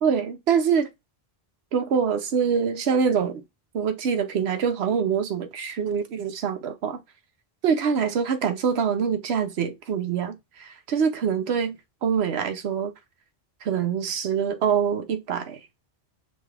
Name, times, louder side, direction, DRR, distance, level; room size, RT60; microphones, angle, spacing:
voice 1, 0.0-0.9 1.7-3.4 3.7-7.0 7.6-12.9 13.6-15.6, right 7 dB, 90° right, 1.0 m, -25 dB
5.4 x 2.4 x 3.3 m
omnidirectional pair, 1.0 m